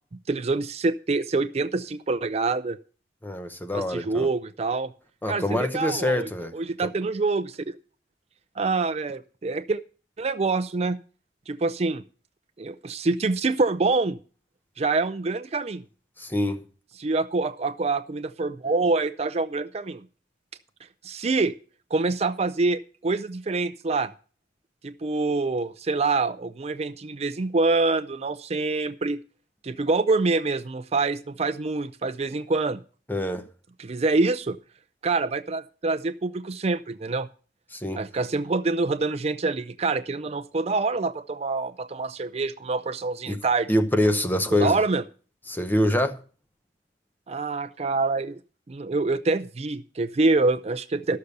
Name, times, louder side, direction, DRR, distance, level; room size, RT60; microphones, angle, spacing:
voice 1, 0.3-2.8 3.7-4.9 5.3-7.8 8.6-9.8 10.2-11.0 11.5-12.0 12.6-14.2 14.8-15.8 17.0-20.0 21.0-21.5 21.9-24.1 24.8-29.2 29.6-32.8 33.8-34.6 35.0-37.3 38.0-43.7 44.5-45.0 47.3-48.4 48.7-51.2, right 3 dB, 35° right, 0.5 m, -26 dB
voice 2, 3.2-4.3 5.2-6.5 16.2-16.7 33.1-33.5 37.7-38.0 43.3-43.4 43.7-44.8 45.5-46.2, left 1 dB, 10° left, 0.8 m, -25 dB
13.0 x 6.6 x 6.8 m
head